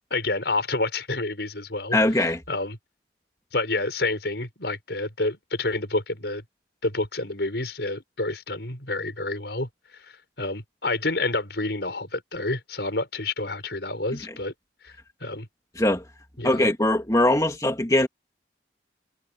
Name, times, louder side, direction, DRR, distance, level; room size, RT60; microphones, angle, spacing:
voice 1, 0.1-2.8 3.5-6.4 6.8-9.7 10.4-14.5 14.8-14.9 15.2-15.5 16.4-16.7, left 2 dB, 70° left, 5.5 m, -29 dB
voice 2, 1.9-2.4 14.3-14.4 15.8-16.0 16.4-18.1, left 1 dB, 20° left, 2.5 m, -21 dB
head